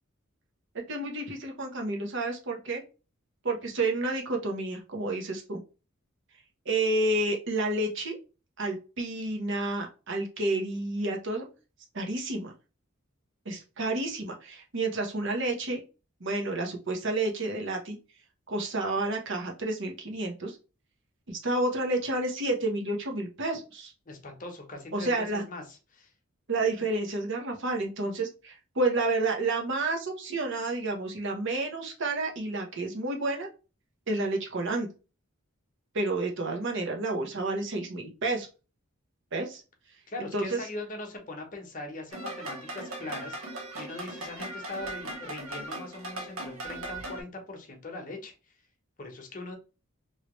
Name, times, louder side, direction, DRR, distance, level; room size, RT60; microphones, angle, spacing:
voice 1, 0.9-2.8 3.4-5.6 6.6-8.2 8.6-11.5 11.9-12.5 13.4-15.8 16.2-18.0 18.5-20.6 21.3-23.9 24.9-25.4 26.5-33.5 34.1-34.9 35.9-38.5 39.3-39.6 40.3-40.6 45.6-45.7, right 2 dB, 60° right, 2 dB, 0.9 m, -30 dB
voice 2, 24.1-26.1 40.1-43.4 43.7-48.3 49.0-49.6, left 2 dB, 40° left, 3 dB, 0.9 m, -40 dB
sound 1, 42.1-47.2, right 1 dB, 80° right, 1.0 m, -38 dB
3.0 x 2.9 x 3.0 m, 0.32 s
head